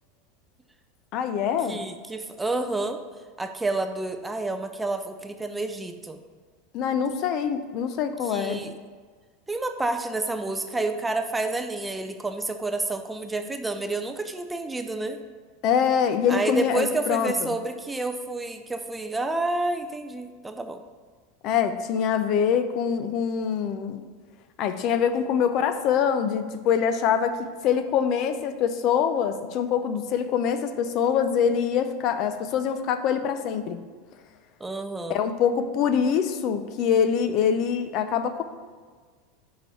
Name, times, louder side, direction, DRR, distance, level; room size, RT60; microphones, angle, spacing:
voice 1, 1.1-1.8 6.7-8.6 15.6-17.6 21.4-24.0 24.6-27.4 27.6-33.8 35.1-38.4, left 7 dB, 45° left, 9 dB, 0.5 m, -24 dB
voice 2, 1.7-3.0 3.4-6.2 8.3-8.7 9.5-15.2 16.3-20.8 34.6-35.2, right 2 dB, 10° right, 7 dB, 0.4 m, -29 dB
5.1 x 5.0 x 5.6 m, 1.5 s
supercardioid pair, 135°, 0 cm